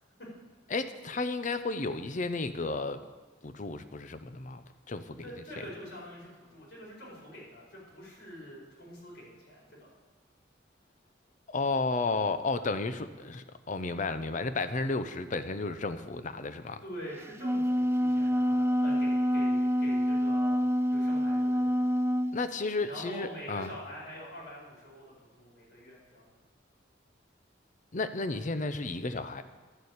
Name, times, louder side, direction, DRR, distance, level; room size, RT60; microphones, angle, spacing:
voice 1, 0.7-3.0 3.4-5.2 11.5-16.8 22.3-23.7 27.9-29.4, left 3 dB, 40° left, 11 dB, 0.6 m, -33 dB
voice 2, 5.2-9.9 16.8-20.6 20.9-21.9 22.8-26.3, equal, 70° left, -5 dB, 4.6 m, -45 dB
Wind instrument woodwind instrument, 17.2-22.4, equal, 15° right, 0.3 m, -27 dB
11.0 x 6.9 x 8.1 m, 1.3 s
head